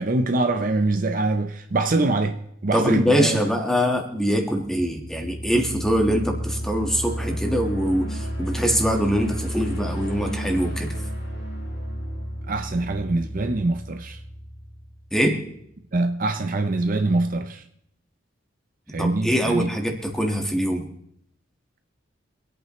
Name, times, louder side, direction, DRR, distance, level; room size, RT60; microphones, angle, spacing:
voice 1, 0.0-3.4 12.5-14.2 15.9-17.6 18.9-19.7, right 2 dB, 45° right, 0.6 m, -24 dB
voice 2, 2.7-10.9 15.1-15.4 19.0-20.8, equal, ahead, 1.5 m, -23 dB
sound 1, 4.5-15.3, equal, 60° left, 4.3 m, -32 dB
25.5 x 8.7 x 3.1 m
head